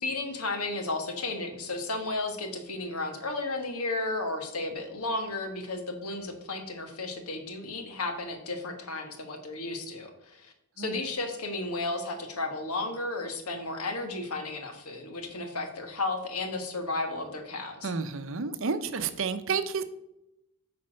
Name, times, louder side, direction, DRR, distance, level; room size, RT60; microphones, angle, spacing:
voice 1, 0.0-17.9, left 2 dB, 90° left, 5 dB, 1.5 m, -33 dB
voice 2, 17.8-19.8, right 5 dB, 60° right, 11 dB, 0.7 m, -30 dB
8.7 x 4.3 x 6.3 m, 0.85 s
head